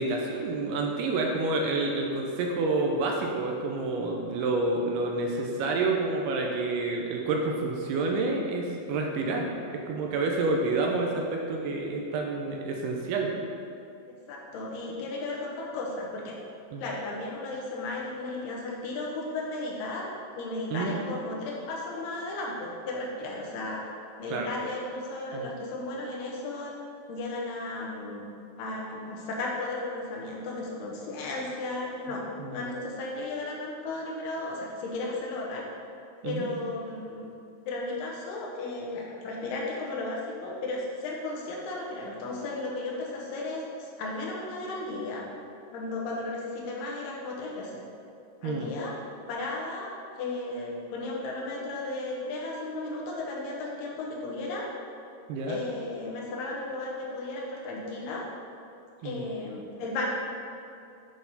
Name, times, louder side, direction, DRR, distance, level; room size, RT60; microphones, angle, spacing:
voice 1, 0.0-13.3 16.7-16.8 20.7-20.9 24.3-24.5 25.3-25.5 32.4-32.7 36.2-36.5 48.4-48.7 55.3-55.6 59.0-59.3, right 3 dB, 80° right, 1 dB, 2.5 m, -29 dB
voice 2, 14.1-16.4 16.8-20.0 20.4-23.8 24.2-26.7 27.1-28.2 28.6-35.6 36.2-37.2 37.7-45.3 45.7-47.8 48.4-49.0 49.3-49.9 50.2-54.7 55.4-58.2 59.0-60.1, left 2 dB, 75° left, -3 dB, 2.9 m, -35 dB
8.6 x 5.8 x 4.1 m, 2.5 s
omnidirectional pair, 4.8 m